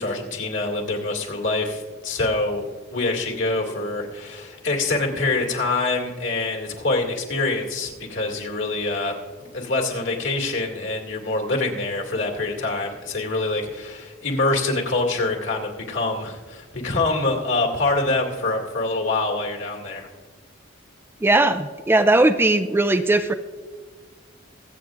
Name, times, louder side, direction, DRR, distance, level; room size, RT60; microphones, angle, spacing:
voice 1, 0.0-9.1 9.5-20.1, left 2 dB, 65° left, 0 dB, 2.3 m, -25 dB
voice 2, 21.2-23.3, right 2 dB, 10° right, 10 dB, 0.3 m, -18 dB
24.0 x 8.3 x 2.5 m, 1.5 s
head